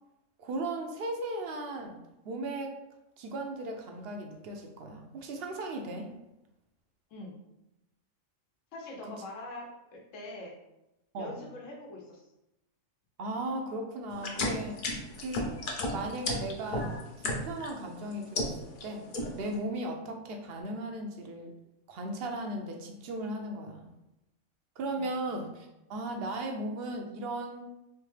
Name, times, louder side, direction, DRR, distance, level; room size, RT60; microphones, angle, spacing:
voice 1, 0.4-2.0 2.2-2.8 3.2-6.1 11.1-11.4 13.2-14.8 15.2-15.6 15.9-19.0 19.3-21.5 21.9-23.9 24.8-27.8, right 1 dB, 60° right, 3 dB, 0.7 m, -37 dB
voice 2, 8.7-10.6 11.2-12.3 24.9-25.1, left 2 dB, 75° left, 0 dB, 1.2 m, -43 dB
sound 1, 14.2-17.7 18.1-18.8 19.1-19.5, left 2 dB, 50° left, 0.7 m, -32 dB
3.5 x 3.3 x 3.2 m, 0.91 s
omnidirectional pair, 1.4 m